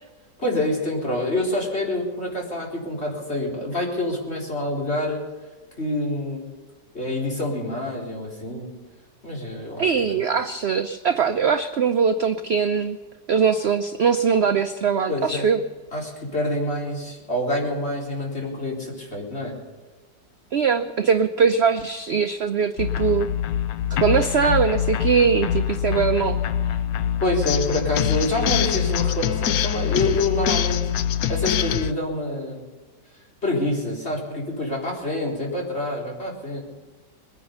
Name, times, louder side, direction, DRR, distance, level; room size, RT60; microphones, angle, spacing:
voice 1, 0.4-5.2 5.8-6.5 6.9-8.7 9.2-10.2 15.1-15.5 15.9-19.6 27.2-30.8 31.1-32.6 33.4-36.6, left 1 dB, 35° left, -2 dB, 4.3 m, -27 dB
voice 2, 9.8-13.0 13.3-15.6 20.5-23.3 23.9-26.4, right 6 dB, 55° right, 8 dB, 0.7 m, -21 dB
sound 1, 22.8-31.9, left 9 dB, 65° left, 1.0 m, -24 dB
21.5 x 9.8 x 6.7 m, 1.3 s
omnidirectional pair, 1.8 m